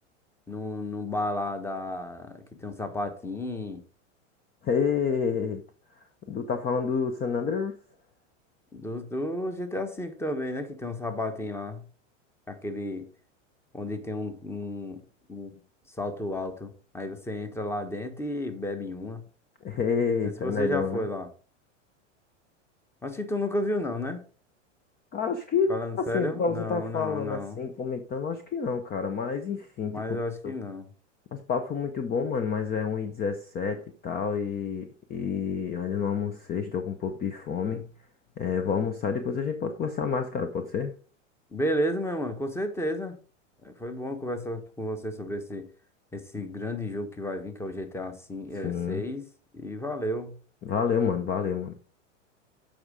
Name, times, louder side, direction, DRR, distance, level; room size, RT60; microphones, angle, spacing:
voice 1, 0.5-3.8 8.7-11.8 12.5-13.0 13.7-15.0 15.3-15.6 16.0-19.2 20.2-21.3 23.0-24.2 25.7-27.6 29.9-30.9 41.5-43.1 43.6-45.7 46.1-49.3 49.5-50.3, left 1 dB, 5° left, 1.2 m, -32 dB
voice 2, 4.6-5.6 6.3-7.8 19.6-21.0 25.1-30.0 30.4-30.5 31.3-37.9 38.4-40.9 48.6-49.1 50.6-51.8, left 6 dB, 25° left, 0.7 m, -29 dB
7.8 x 5.0 x 5.0 m
hypercardioid pair, 110°, 37 cm